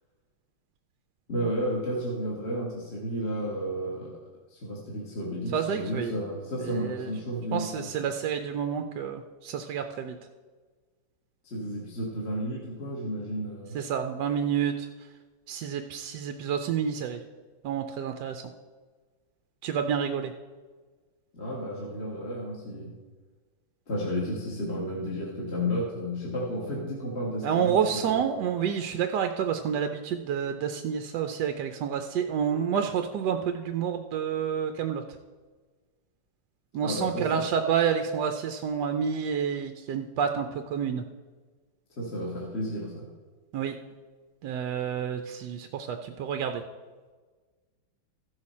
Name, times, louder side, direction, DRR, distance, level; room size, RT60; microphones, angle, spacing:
voice 1, 1.3-4.2 4.5-7.8 11.4-13.8 21.3-22.9 23.9-28.2 36.8-37.4 42.0-43.0, equal, 35° left, -4 dB, 1.6 m, -32 dB
voice 2, 5.5-6.1 6.6-7.1 7.5-10.2 13.7-14.9 15.5-17.2 17.6-18.4 19.6-20.3 27.4-35.0 36.7-41.0 43.5-43.8 44.4-46.6, right 7 dB, 75° right, 6 dB, 1.0 m, -29 dB
14.5 x 6.6 x 4.2 m, 1.4 s
omnidirectional pair, 2.3 m